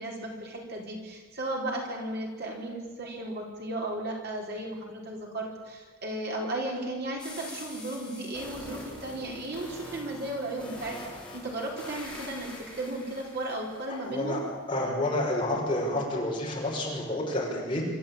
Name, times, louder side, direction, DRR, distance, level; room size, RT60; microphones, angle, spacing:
voice 1, 0.0-14.4, right 1 dB, 50° right, 0 dB, 4.5 m, -35 dB
sound 1, 7.2-14.2, left 1 dB, 5° left, 4.6 m, -44 dB
voice 2, 14.7-17.9, left 1 dB, 25° left, -3 dB, 5.8 m, -29 dB
26.0 x 14.0 x 8.8 m, 1.3 s
head